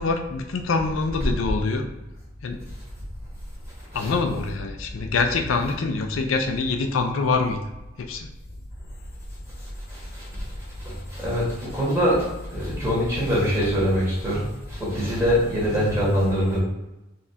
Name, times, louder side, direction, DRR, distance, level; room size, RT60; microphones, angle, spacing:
voice 1, 0.0-1.9 2.4-2.6 3.9-7.6 8.0-8.3, left 4 dB, 90° left, 5 dB, 0.4 m, -25 dB
voice 2, 11.2-12.2 12.5-14.4 14.8-16.6, equal, 15° right, -7 dB, 1.4 m, -23 dB
4.0 x 2.4 x 2.7 m, 1.0 s
head